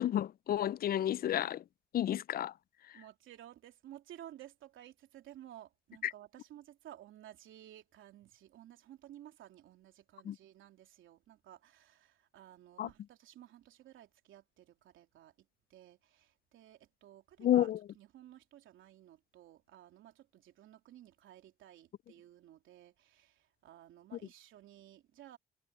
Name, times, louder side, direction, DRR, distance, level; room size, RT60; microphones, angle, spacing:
voice 1, 0.0-1.6 1.9-2.5 2.9-3.0 6.0-6.1 10.2-10.4 12.8-12.9 17.4-17.8 24.1-24.2, left 11 dB, 50° left, 0.4 m, -31 dB
voice 2, 2.9-17.7 17.9-25.4, right 12 dB, 80° right, 3.1 m, -55 dB
cardioid pair, 90°, 20 cm